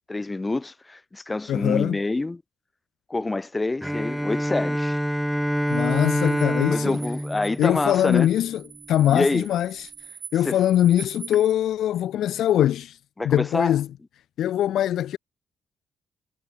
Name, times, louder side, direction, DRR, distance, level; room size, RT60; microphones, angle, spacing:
voice 1, 0.1-2.4 3.1-5.0 6.7-8.3 9.1-9.5 10.4-10.6 13.2-13.8, left 2 dB, 20° left, 1.7 m, -26 dB
voice 2, 1.5-2.0 5.7-7.0 7.6-8.6 8.9-9.9 10.3-13.0 13.2-13.9 14.4-15.2, left 11 dB, 75° left, 0.8 m, -22 dB
Bowed string instrument, 3.8-8.5, equal, ahead, 3.0 m, -26 dB
sound 1, 5.7-11.5, right 7 dB, 50° right, 4.2 m, -44 dB
cardioid pair, 90°, 0 cm